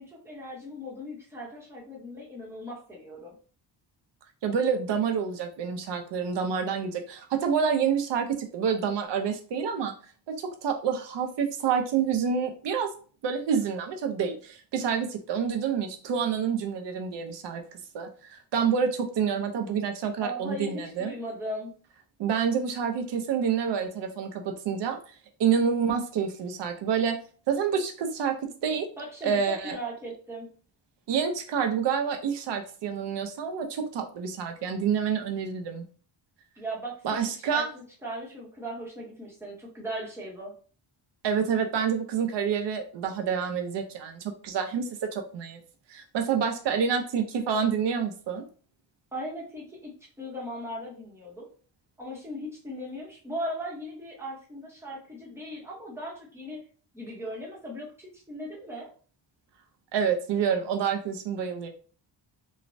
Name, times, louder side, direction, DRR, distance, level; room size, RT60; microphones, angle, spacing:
voice 1, 0.0-3.3 20.2-21.7 29.0-30.5 36.6-40.5 49.1-49.9 50.2-51.5 52.0-56.6 56.9-58.9, equal, 5° right, -4 dB, 0.8 m, -38 dB
voice 2, 4.4-9.9 10.3-12.9 13.2-21.1 22.2-25.0 25.4-27.2 27.5-28.9 29.2-29.8 31.1-35.8 37.0-37.7 41.2-45.6 45.9-48.5 59.9-61.7, right 7 dB, 60° right, 5 dB, 0.6 m, -28 dB
3.0 x 2.1 x 2.6 m, 0.40 s
wide cardioid pair, 175°, 47 cm